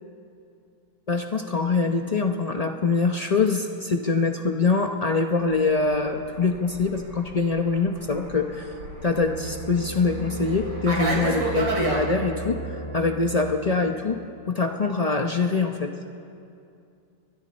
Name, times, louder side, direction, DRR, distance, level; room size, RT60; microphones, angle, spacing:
voice 1, 1.1-8.7 9.0-14.2 14.5-15.9, left 4 dB, 70° left, 3 dB, 0.3 m, -24 dB
Fixed-wing aircraft airplane, 5.5-12.0, right 2 dB, 60° right, 3.8 m, -31 dB
sound 1, 8.9-14.1, right 2 dB, 25° left, 5.1 m, -36 dB
29.5 x 23.0 x 4.3 m, 2.5 s
omnidirectional pair, 2.2 m